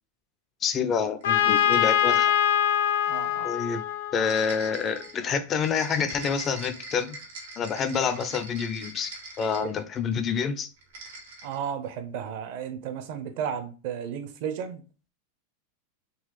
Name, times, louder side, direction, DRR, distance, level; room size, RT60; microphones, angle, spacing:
voice 1, 0.6-2.3 3.4-3.8 4.1-7.2 7.6-10.7, left 6 dB, 25° left, 0.4 m, -28 dB
Trumpet, 1.2-5.0, left 10 dB, 80° left, 0.6 m, -24 dB
sound 1, 1.2-2.5 4.2-10.1 10.8-11.7, right 2 dB, 85° right, 1.2 m, -43 dB
voice 2, 3.1-3.5 9.6-9.7 11.4-14.8, right 8 dB, 50° right, 0.7 m, -33 dB
3.9 x 2.4 x 3.0 m
supercardioid pair, 155°, 0 cm